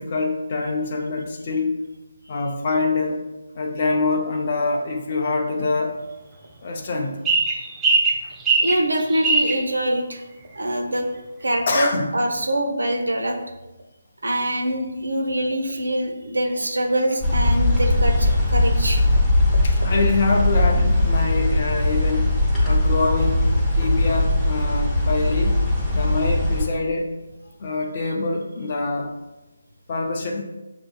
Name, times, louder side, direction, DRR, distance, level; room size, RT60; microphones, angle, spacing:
voice 1, 0.0-1.7 2.3-3.2 3.5-5.9 6.6-7.2 8.2-8.3 11.7-12.1 19.6-23.5 23.7-25.6 25.9-27.2 27.6-29.1 29.9-30.4, left 3 dB, 40° left, 0 dB, 0.5 m, -25 dB
sound 1, 7.2-9.6, right 3 dB, 15° right, 0.4 m, -20 dB
voice 2, 8.6-10.2 10.5-11.0 11.4-13.4 14.2-19.0, right 1 dB, 85° right, 3 dB, 0.7 m, -24 dB
sound 2, 17.2-26.7, left 1 dB, 5° left, 1.0 m, -20 dB
6.6 x 2.6 x 2.3 m, 1.0 s
figure-of-eight pair, 155°, 0 cm